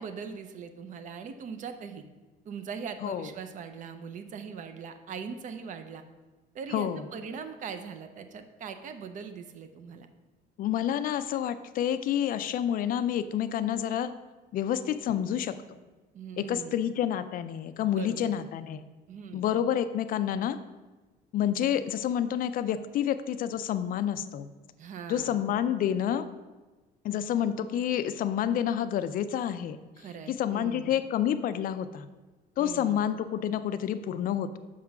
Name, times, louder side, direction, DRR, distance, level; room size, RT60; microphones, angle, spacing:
voice 1, 0.0-2.0 2.5-6.0 6.5-10.1 16.1-16.8 17.9-18.3 19.1-19.5 24.8-25.4 30.0-30.9 32.6-33.0, right 6 dB, 45° right, 9 dB, 0.6 m, -41 dB
voice 2, 10.6-14.1 14.5-15.5 16.4-18.8 19.3-20.6 21.3-24.5 25.1-26.3 27.0-29.8 30.3-32.1 32.6-34.6, left 10 dB, 50° left, 11 dB, 0.4 m, -29 dB
6.3 x 3.7 x 5.8 m, 1.2 s
cardioid pair, 155°, 19 cm